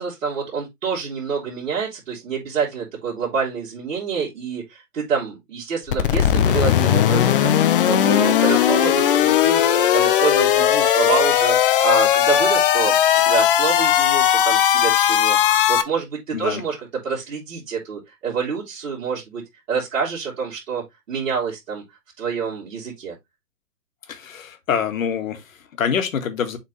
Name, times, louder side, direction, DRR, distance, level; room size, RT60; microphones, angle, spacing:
voice 1, 0.0-9.6 9.9-13.0 13.2-16.8 17.0-19.4 19.7-21.8 22.2-23.1, right 6 dB, 55° right, 3.3 m, -27 dB
sound 1, 5.9-15.8, left 10 dB, 35° left, 0.7 m, -17 dB
voice 2, 24.1-26.6, left 7 dB, 55° left, 1.8 m, -25 dB
7.2 x 4.1 x 3.2 m
hypercardioid pair, 135°, 47 cm